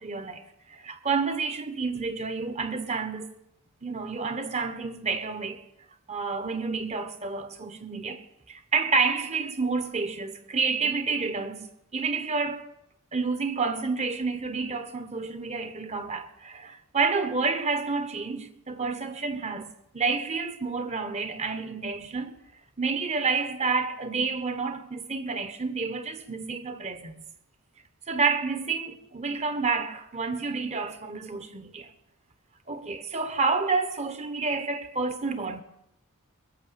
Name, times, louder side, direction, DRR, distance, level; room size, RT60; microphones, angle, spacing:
voice 1, 0.0-3.4 3.8-5.6 6.1-11.7 11.9-12.6 13.1-22.3 22.8-27.2 28.1-31.9 32.7-35.6, right 4 dB, 30° right, 1.1 m, -29 dB
22.0 x 7.3 x 8.5 m
head